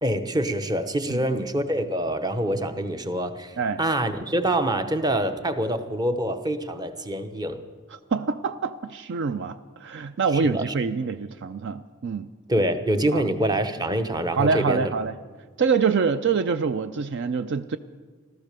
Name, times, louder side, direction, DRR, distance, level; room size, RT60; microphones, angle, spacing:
voice 1, 0.0-7.6 10.3-10.6 12.5-14.9, right 1 dB, 20° right, 9 dB, 0.8 m, -25 dB
voice 2, 1.1-1.4 3.6-3.8 7.9-12.3 13.1-13.2 14.4-15.2 15.6-17.8, right 5 dB, 55° right, 12 dB, 0.4 m, -25 dB
15.5 x 13.0 x 6.7 m, 1.5 s
head